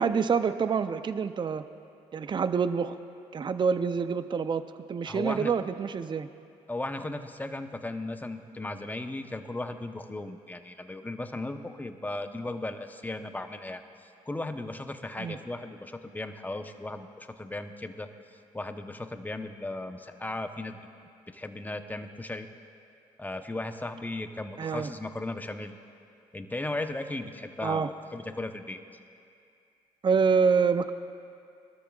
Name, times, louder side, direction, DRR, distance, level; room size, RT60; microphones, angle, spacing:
voice 1, 0.0-1.6 2.1-3.0 3.3-4.6 4.9-6.3 15.2-15.4 24.6-24.9 27.6-27.9 30.0-30.9, right 6 dB, 35° right, 11 dB, 0.6 m, -26 dB
voice 2, 5.1-5.5 6.7-18.1 18.5-20.8 21.3-22.5 23.2-25.8 26.3-28.8, left 2 dB, 10° left, 7 dB, 0.9 m, -36 dB
22.0 x 13.0 x 2.4 m, 2.4 s
supercardioid pair, 65°, 14 cm